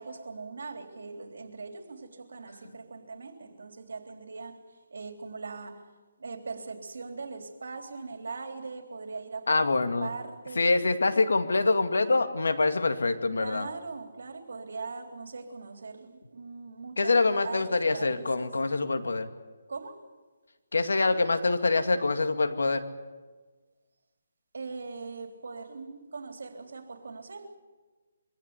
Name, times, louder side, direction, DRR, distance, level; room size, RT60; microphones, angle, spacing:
voice 1, 0.0-4.6 4.9-5.8 6.2-10.7 13.3-18.5 19.7-20.0 24.5-27.6, right 4 dB, 75° right, 3.5 m, -40 dB
voice 2, 9.5-10.1 10.6-13.7 17.0-19.3 20.7-22.8, left 3 dB, 85° left, 2.3 m, -25 dB
23.5 x 17.0 x 9.8 m
hypercardioid pair, 165°, 0 cm